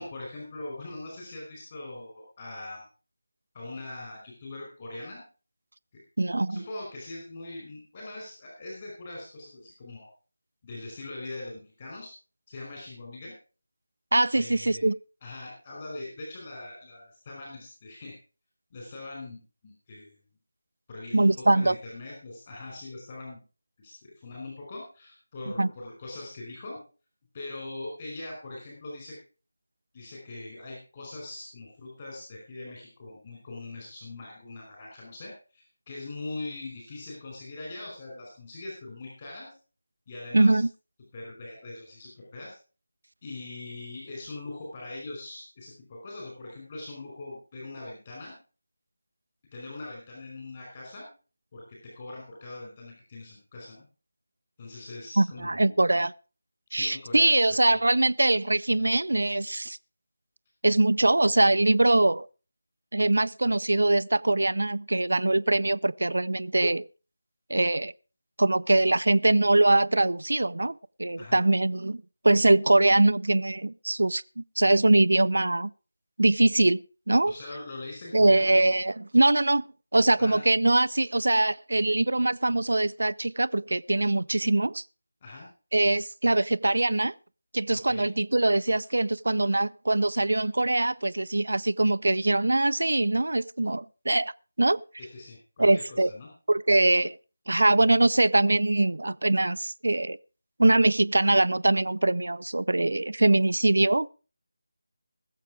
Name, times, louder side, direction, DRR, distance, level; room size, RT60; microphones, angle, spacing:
voice 1, 0.0-2.8 3.5-5.2 6.4-10.1 10.6-12.1 12.5-13.3 14.3-14.9 15.2-18.1 18.7-20.2 20.9-23.4 23.8-26.8 27.3-29.1 29.9-39.5 40.1-40.6 41.1-42.6 43.2-48.4 49.5-51.1 51.5-53.8 54.6-55.7 56.7-57.3 57.7-57.8 71.2-71.4 77.3-78.6 80.2-80.4 85.2-85.5 87.7-88.1 95.0-96.3, left 2 dB, 30° left, 4.8 m, -41 dB
voice 2, 6.2-6.6 14.1-14.9 21.1-21.8 25.6-25.7 40.3-40.7 55.2-56.1 56.7-59.8 60.6-62.3 62.9-66.8 67.5-67.9 68.4-74.2 74.6-75.7 76.2-77.3 78.1-79.6 79.9-84.8 85.7-87.1 87.5-94.3 94.6-94.8 95.6-96.1 96.5-97.2 97.5-100.2 100.6-104.1, right 2 dB, 65° right, 0.5 m, -23 dB
20.0 x 7.6 x 4.8 m
figure-of-eight pair, 160°, 0 cm